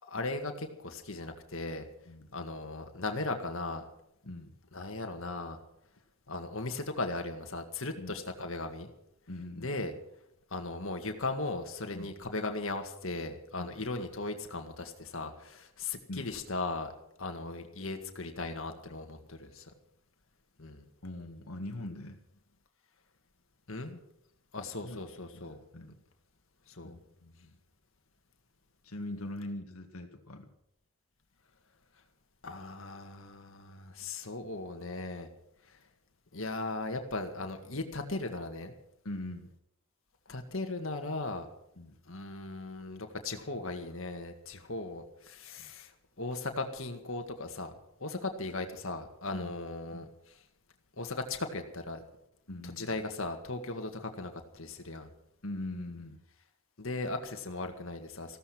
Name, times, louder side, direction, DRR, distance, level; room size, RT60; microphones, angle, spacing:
voice 1, 0.0-1.9 2.3-3.8 4.7-5.6 6.3-8.9 9.6-9.9 10.5-16.9 17.2-19.7 20.6-20.8 23.7-24.0 24.5-25.6 26.7-26.9 32.4-35.3 35.7-35.8 36.3-38.7 40.3-41.5 42.1-45.9 46.2-47.7 48.0-50.1 51.0-52.0 52.6-55.1 56.8-58.4, left 2 dB, 65° left, 5 dB, 1.9 m, -37 dB
voice 2, 4.2-4.6 8.0-8.1 9.3-9.8 11.9-12.1 13.6-13.8 16.1-16.3 21.0-22.2 24.8-25.1 25.3-26.0 26.8-27.6 28.8-30.5 39.0-39.5 41.8-42.0 45.6-45.7 49.3-49.5 49.9-50.1 52.5-53.0 55.4-56.2, left 1 dB, 80° left, 3 dB, 1.8 m, -42 dB
15.5 x 13.5 x 6.2 m, 0.78 s
head